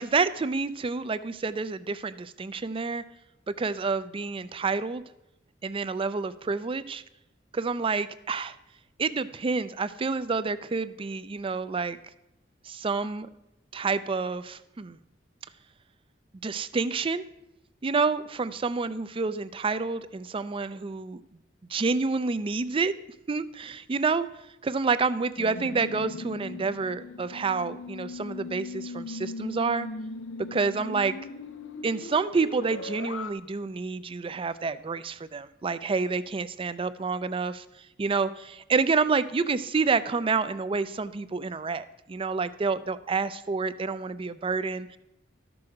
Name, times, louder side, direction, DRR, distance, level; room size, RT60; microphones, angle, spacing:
voice 1, 0.0-3.0 3.5-5.0 5.6-7.0 7.5-8.5 9.0-12.0 12.7-13.3 13.7-15.0 16.4-17.2 17.8-21.2 21.7-22.9 23.3-24.3 24.6-29.9 30.5-31.1 31.8-37.6 38.0-45.0, right 4 dB, 30° right, 14 dB, 0.4 m, -28 dB
sound 1, 25.4-33.3, left 3 dB, 75° left, 0.6 m, -39 dB
13.0 x 6.1 x 4.8 m, 0.89 s
head